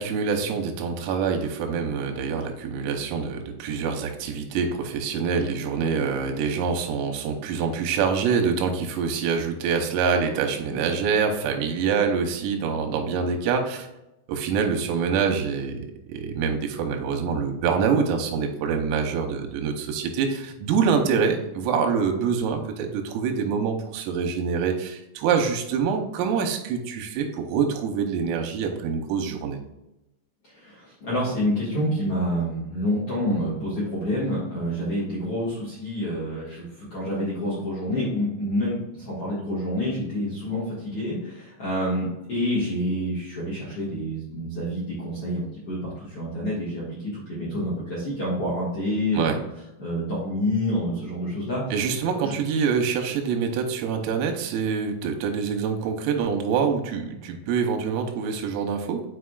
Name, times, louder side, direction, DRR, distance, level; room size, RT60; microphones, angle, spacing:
voice 1, 0.0-13.9 14.3-29.6 49.1-49.4 51.7-59.0, right 6 dB, 90° right, 4 dB, 3.6 m, -25 dB
voice 2, 30.5-49.3 49.8-51.6 52.1-52.3, equal, 70° left, -7 dB, 1.4 m, -28 dB
8.6 x 4.9 x 2.4 m, 0.93 s
omnidirectional pair, 5.9 m